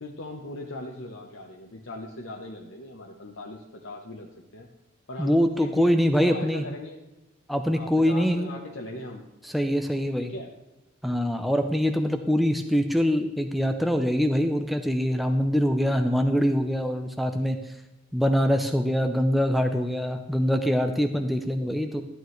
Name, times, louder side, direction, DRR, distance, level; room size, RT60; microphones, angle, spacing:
voice 1, 0.0-4.7 5.1-7.0 7.7-9.3 10.2-10.5, left 2 dB, 65° left, 0 dB, 0.9 m, -39 dB
voice 2, 5.2-6.7 7.5-8.5 9.4-10.3 11.0-17.7 18.1-22.0, equal, ahead, 5 dB, 0.5 m, -24 dB
13.0 x 9.2 x 3.2 m, 0.95 s
head